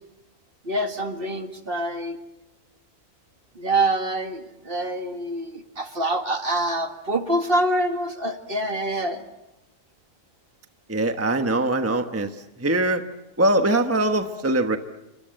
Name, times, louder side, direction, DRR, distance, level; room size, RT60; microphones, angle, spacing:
voice 1, 0.6-2.2 3.6-9.2, right 1 dB, 50° right, 6 dB, 2.1 m, -26 dB
voice 2, 10.9-12.3 12.6-13.0 13.4-14.8, right 1 dB, 10° right, 7 dB, 1.1 m, -22 dB
28.5 x 24.5 x 7.9 m, 0.97 s
omnidirectional pair, 1.3 m